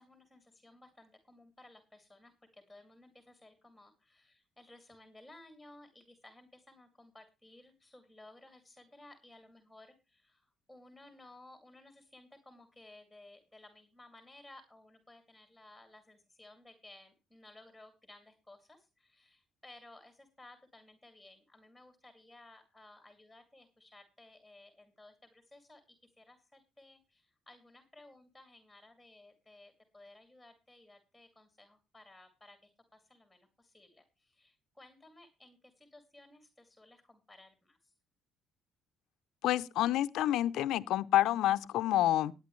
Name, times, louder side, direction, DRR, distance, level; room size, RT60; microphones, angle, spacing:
voice 1, 0.0-25.8 26.2-37.9, left 2 dB, ahead, 2.4 m, -58 dB
voice 2, 39.4-42.3, left 13 dB, 75° left, 0.7 m, -28 dB
19.0 x 9.1 x 3.2 m
cardioid pair, 120°, 0 cm